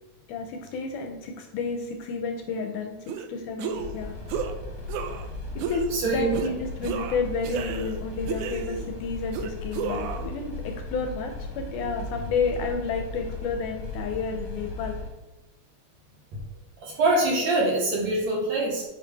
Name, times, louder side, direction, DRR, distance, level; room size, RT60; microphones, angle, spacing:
voice 1, 0.3-4.2 5.6-15.0, left 4 dB, 75° left, 4 dB, 2.0 m, -31 dB
sound 1, 3.1-3.3 3.6-4.0 4.3-4.5 4.9-5.3 5.6-5.9 6.3-6.5 6.8-8.0 8.3-8.9 9.3-10.3, right 7 dB, 85° right, 1.8 m, -32 dB
sound 2, 3.8-15.1, left 2 dB, 50° left, 1.3 m, -37 dB
voice 2, 5.9-6.4 16.8-18.8, right 2 dB, 60° right, -2 dB, 2.3 m, -24 dB
8.8 x 5.5 x 3.4 m, 1.0 s
omnidirectional pair, 4.0 m